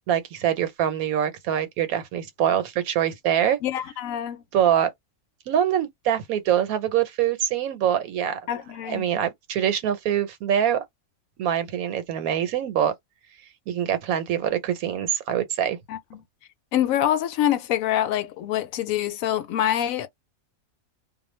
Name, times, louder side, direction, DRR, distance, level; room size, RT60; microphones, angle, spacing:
voice 1, 0.1-3.6 4.5-4.9 5.5-8.4 8.9-10.8 11.4-12.9 13.7-15.8, right 9 dB, 90° right, 1.1 m, -24 dB
voice 2, 3.6-4.4 8.5-9.1 15.9-16.2 16.7-20.1, left 11 dB, 75° left, 1.0 m, -25 dB
2.3 x 2.1 x 3.0 m
omnidirectional pair, 1.5 m